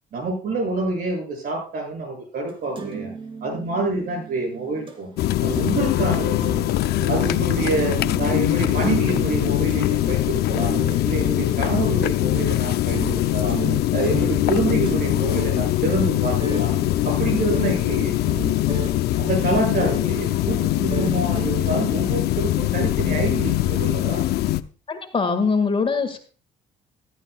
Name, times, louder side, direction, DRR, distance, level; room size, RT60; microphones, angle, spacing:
voice 1, 0.1-3.1 3.4-5.1 5.4-6.4 7.1-10.8 11.0-13.6 13.9-16.7 17.0-18.1 19.2-24.2, right 3 dB, 60° right, 2 dB, 6.7 m, -27 dB
sound 1, 2.5-5.0 5.3-22.2, right 4 dB, 30° right, 2.8 m, -35 dB
sound 2, 5.2-24.6, left 15 dB, 70° left, 0.6 m, -22 dB
voice 2, 24.9-26.2, left 4 dB, 30° left, 8 dB, 1.8 m, -22 dB
14.5 x 13.0 x 2.3 m, 0.39 s
cardioid pair, 110°, 17 cm